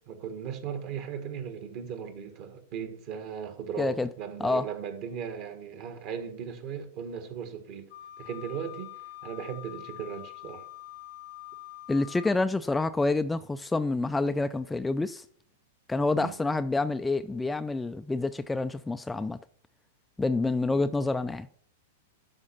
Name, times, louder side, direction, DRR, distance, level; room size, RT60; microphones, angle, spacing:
voice 1, 0.1-7.9 8.2-8.9 9.2-10.6 16.1-16.3 20.7-20.9, right 7 dB, 45° right, 1.5 m, -37 dB
voice 2, 3.8-4.1 4.4-4.7 11.9-15.2 15.9-19.4 20.2-21.5, left 3 dB, 10° left, 0.3 m, -28 dB
Wind instrument woodwind instrument, 7.9-12.4, left 17 dB, 55° left, 0.7 m, -45 dB
12.0 x 4.4 x 5.6 m
figure-of-eight pair, 100°, 0 cm